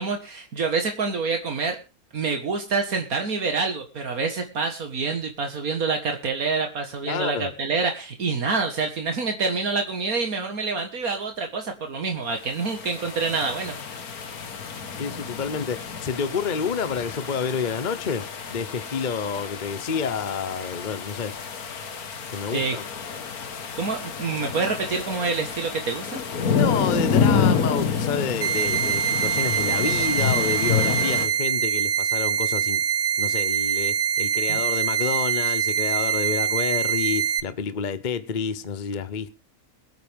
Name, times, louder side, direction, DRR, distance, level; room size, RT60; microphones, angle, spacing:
voice 1, 0.0-1.8 2.1-14.0 22.5-22.8 23.8-26.2 34.5-34.6, right 4 dB, 75° right, 2.1 m, -27 dB
voice 2, 7.0-7.5 14.9-21.3 22.3-22.8 26.5-32.8 33.2-39.3, left 6 dB, 35° left, 1.0 m, -29 dB
sound 1, 12.4-31.3, left 6 dB, 85° left, 2.0 m, -28 dB
sound 2, 28.4-37.4, right 8 dB, 55° right, 1.0 m, -24 dB
22.5 x 9.4 x 3.6 m
omnidirectional pair, 1.5 m